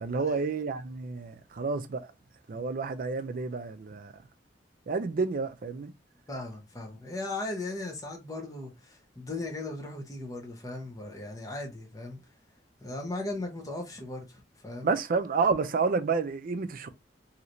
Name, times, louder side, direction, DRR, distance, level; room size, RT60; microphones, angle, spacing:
voice 1, 0.0-2.1 2.5-4.1 4.9-5.9 14.8-16.9, right 4 dB, 50° right, 0.4 m, -30 dB
voice 2, 6.3-12.2 12.8-14.9, left 2 dB, 20° left, 0.9 m, -37 dB
3.1 x 2.8 x 2.6 m
head